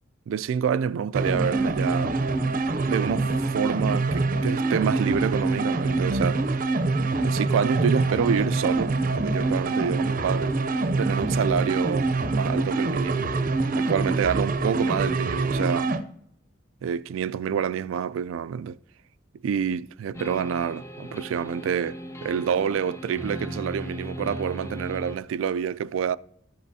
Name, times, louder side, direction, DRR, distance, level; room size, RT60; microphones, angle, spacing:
voice 1, 0.3-2.2 2.9-6.4 7.2-10.6 11.0-13.3 13.8-15.9 16.8-18.8 19.4-26.2, right 7 dB, 90° right, 0.3 m, -27 dB
sound 1, 1.1-16.0, right 3 dB, 45° right, 0.6 m, -25 dB
sound 2, 20.1-25.2, equal, 15° left, 0.6 m, -37 dB
13.5 x 8.4 x 2.7 m
head